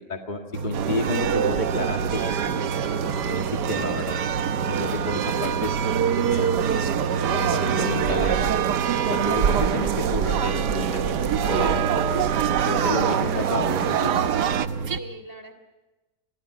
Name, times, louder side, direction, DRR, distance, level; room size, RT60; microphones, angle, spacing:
voice 1, 0.0-2.7 3.3-4.1 4.6-5.7 6.1-6.6 7.2-8.7 9.1-12.3 12.7-14.2, left 2 dB, 30° left, 2 dB, 2.1 m, -31 dB
sound 1, 0.5-15.0, right 4 dB, 60° right, 1.6 m, -31 dB
sound 2, 0.7-14.7, right 9 dB, 90° right, 1.6 m, -25 dB
voice 2, 14.9-15.5, right 1 dB, 10° right, 9 dB, 3.4 m, -43 dB
30.0 x 24.5 x 5.0 m, 1.1 s
omnidirectional pair, 1.7 m